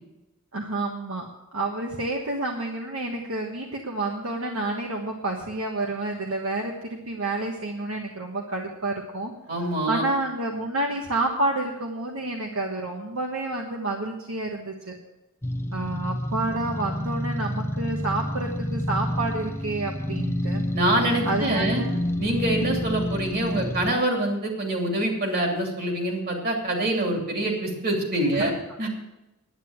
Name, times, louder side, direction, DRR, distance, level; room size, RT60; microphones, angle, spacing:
voice 1, 0.5-1.3 1.5-9.3 9.6-15.0 15.7-20.7 21.2-22.0 27.1-27.3 28.3-28.5, right 2 dB, 65° right, 0 dB, 1.3 m, -29 dB
voice 2, 9.5-10.0 20.7-21.8 22.2-28.5 28.8-28.9, right 1 dB, 45° right, 1 dB, 2.9 m, -25 dB
sound 1, 15.4-23.9, left 1 dB, 10° left, 0.5 m, -29 dB
10.0 x 9.8 x 7.9 m, 0.97 s
head